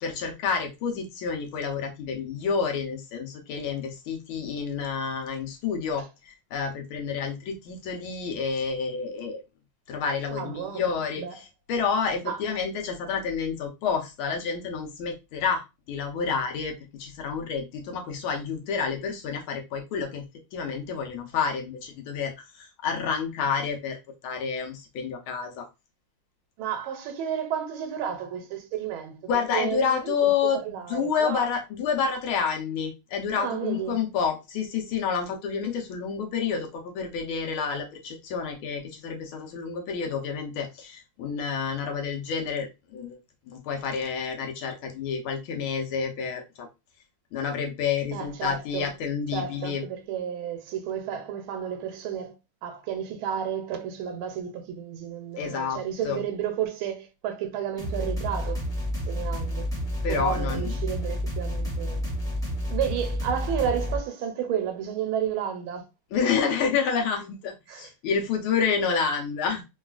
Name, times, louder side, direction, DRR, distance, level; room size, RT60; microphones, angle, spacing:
voice 1, 0.0-9.4 9.9-15.6 15.9-20.2 20.5-24.0 24.2-25.7 29.3-30.6 30.9-43.2 43.5-46.7 47.3-49.8 55.4-56.2 60.0-60.7 66.1-69.6, left 6 dB, 80° left, 1.6 m, -29 dB
voice 2, 10.3-11.3 12.2-12.4 26.6-29.2 29.5-31.5 33.3-34.0 48.1-48.9 49.3-52.3 52.6-58.6 59.1-59.7 60.1-62.1 62.7-65.9 67.7-67.9, right 8 dB, 80° right, 1.5 m, -32 dB
sound 1, 57.8-64.0, equal, 5° left, 0.5 m, -30 dB
3.7 x 2.3 x 2.3 m
omnidirectional pair, 2.3 m